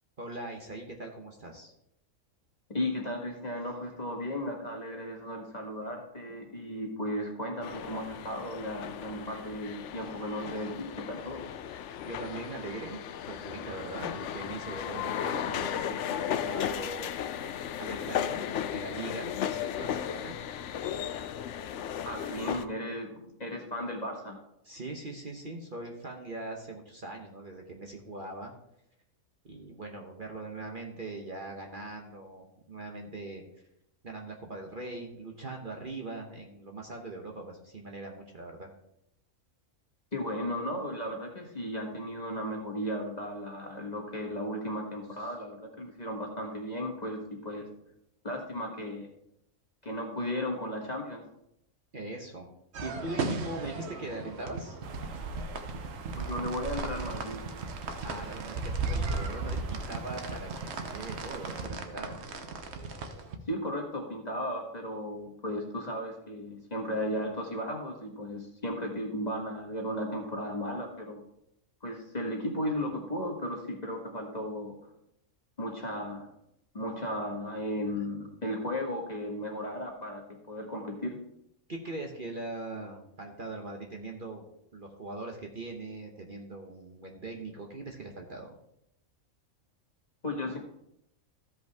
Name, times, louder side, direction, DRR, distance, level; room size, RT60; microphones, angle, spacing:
voice 1, 0.2-1.7 12.0-13.0 13.3-17.2 17.8-20.4 24.6-28.5 29.4-33.4 34.0-38.7 51.9-52.5 52.8-54.8 58.0-62.2 81.7-84.4 84.7-88.6, right 2 dB, 40° right, 1 dB, 1.1 m, -41 dB
voice 2, 2.7-11.4 22.0-24.4 40.1-47.7 48.2-49.1 49.8-51.2 56.2-57.4 63.5-71.2 71.8-74.7 75.6-76.3 76.7-80.2 80.5-81.2 90.2-90.6, equal, 30° left, 0 dB, 1.6 m, -35 dB
sound 1, 7.6-22.6, left 9 dB, 65° left, 0.8 m, -35 dB
sound 2, 52.7-63.4, right 3 dB, 55° right, 1.1 m, -36 dB
sound 3, 54.8-61.7, right 4 dB, 75° right, 1.1 m, -43 dB
14.5 x 5.3 x 3.5 m, 0.79 s
omnidirectional pair, 1.4 m